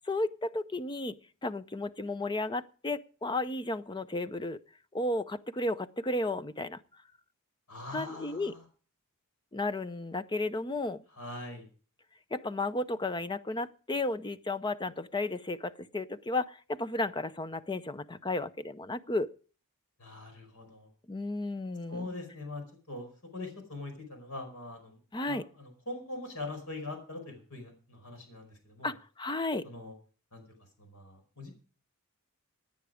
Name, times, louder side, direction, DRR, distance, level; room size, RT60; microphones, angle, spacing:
voice 1, 0.1-1.1 1.4-4.6 4.9-6.8 7.9-8.5 9.5-11.0 12.3-19.3 21.1-22.1 25.1-25.4 28.8-29.6, left 2 dB, 20° left, 14 dB, 0.6 m, -33 dB
voice 2, 7.7-8.6 11.2-11.7 20.0-20.9 21.9-23.1 23.3-25.0 25.2-28.9 29.6-29.9 30.3-30.4 30.8-31.5, left 2 dB, 70° left, 5 dB, 5.0 m, -42 dB
17.0 x 9.4 x 5.0 m, 0.40 s
head